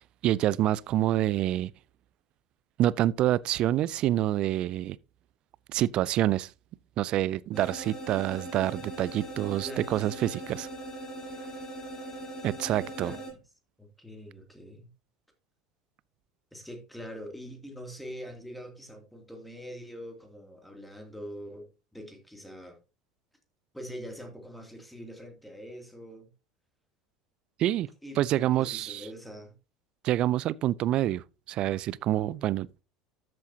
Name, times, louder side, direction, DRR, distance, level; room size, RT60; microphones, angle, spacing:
voice 1, 0.0-1.7 2.8-5.0 5.7-6.5 7.0-10.7 12.4-13.1 27.6-27.9 28.2-29.1 30.0-32.8, right 13 dB, 45° right, 0.4 m, -27 dB
sound 1, 7.5-13.3, right 1 dB, 25° left, 4.7 m, -40 dB
voice 2, 9.3-9.9 12.6-13.4 13.8-14.9 16.5-21.7 21.9-22.8 23.7-26.3 28.0-29.5, equal, ahead, 2.7 m, -44 dB
13.0 x 7.7 x 2.8 m
figure-of-eight pair, 70°, 2 cm